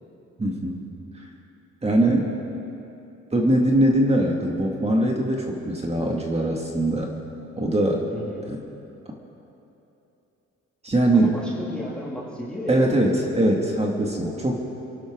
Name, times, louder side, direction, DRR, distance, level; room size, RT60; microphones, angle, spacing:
voice 1, 0.4-0.9 1.8-2.3 3.3-7.1 7.6-8.1 8.5-8.6 10.8-11.3 12.7-14.6, right 1 dB, 20° right, -1 dB, 2.3 m, -21 dB
voice 2, 8.1-8.5 11.1-13.3 14.2-14.6, left 1 dB, 5° left, -6 dB, 2.8 m, -34 dB
28.0 x 11.5 x 3.9 m, 2.9 s
cardioid pair, 90°, 30 cm